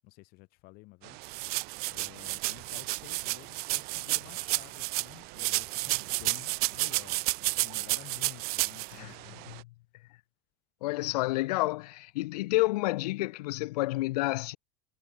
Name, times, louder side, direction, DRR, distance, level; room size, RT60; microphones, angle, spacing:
voice 1, 0.0-1.3 1.9-9.5, left 23 dB, 50° left, 7.7 m, -52 dB
sound 1, 1.0-9.6, right 26 dB, 55° right, 6.6 m, -48 dB
sound 2, 1.2-5.1 5.4-8.9, right 24 dB, 70° right, 1.0 m, -31 dB
voice 2, 10.8-14.6, left 19 dB, 80° left, 2.7 m, -29 dB
supercardioid pair, 155°, 20 cm